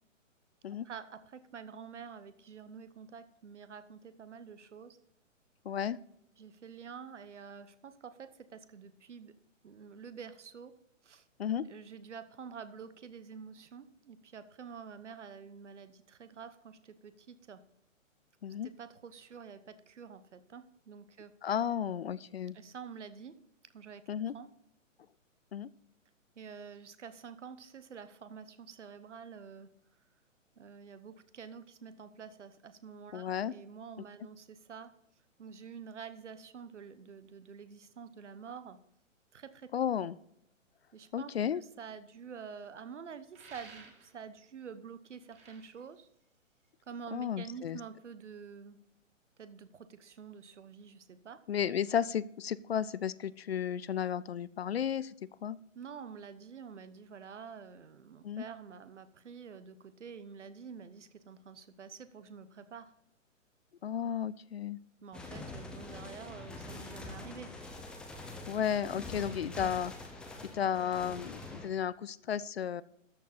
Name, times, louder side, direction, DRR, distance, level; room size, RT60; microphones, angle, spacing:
voice 1, 0.8-5.0 6.4-9.3 9.6-10.7 11.0-11.2 11.7-17.6 18.6-21.3 22.5-23.3 23.7-24.0 24.3-24.5 26.4-29.7 30.6-34.9 35.4-38.8 39.3-39.7 40.9-46.1 46.9-48.8 49.4-51.4 55.7-62.9 65.0-67.5, right 6 dB, 60° right, 12 dB, 1.1 m, -48 dB
voice 2, 5.6-6.0 11.4-11.6 18.4-18.7 21.4-22.6 24.1-24.3 25.5-25.7 33.1-33.5 39.7-40.2 41.1-41.6 47.1-47.8 51.5-55.1 55.4-55.6 58.2-58.5 63.8-64.8 68.5-69.9 70.5-72.8, left 9 dB, 50° left, 19 dB, 0.4 m, -33 dB
sound 1, 43.3-44.3 45.1-46.8, right 4 dB, 15° right, 2.4 m, -55 dB
sound 2, 65.1-71.7, left 2 dB, ahead, 0.6 m, -45 dB
13.0 x 7.2 x 4.1 m, 0.78 s
figure-of-eight pair, 125°, 39 cm